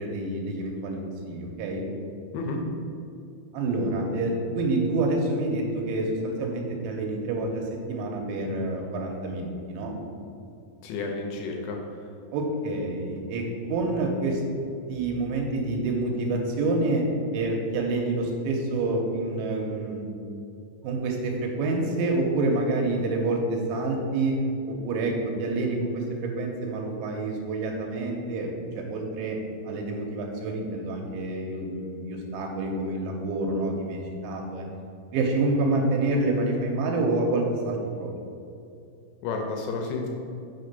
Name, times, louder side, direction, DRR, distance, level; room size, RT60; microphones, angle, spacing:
voice 1, 0.0-1.8 3.5-10.0 12.3-14.4 14.9-17.1 17.3-20.1 20.8-24.4 24.7-29.4 29.6-34.6 35.1-38.1, right 2 dB, 80° right, 1 dB, 3.1 m, -28 dB
voice 2, 10.8-12.0 39.2-40.1, left 3 dB, 80° left, 1 dB, 2.8 m, -31 dB
6.7 x 4.9 x 6.6 m, 2.6 s
omnidirectional pair, 5.5 m